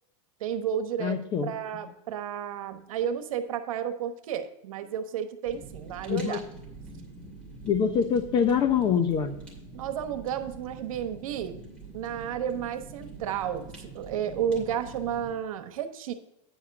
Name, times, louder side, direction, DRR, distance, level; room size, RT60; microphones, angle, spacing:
voice 1, 0.4-1.2 1.4-6.4 9.7-11.6 11.9-16.1, right 9 dB, 80° right, 9 dB, 1.1 m, -32 dB
voice 2, 1.0-1.5 6.1-6.4 7.6-9.4, left 7 dB, 25° left, 8 dB, 0.9 m, -25 dB
Fire, 5.5-15.3, right 3 dB, 5° left, 2.6 m, -45 dB
9.9 x 5.0 x 5.2 m, 0.88 s
supercardioid pair, 160°, 17 cm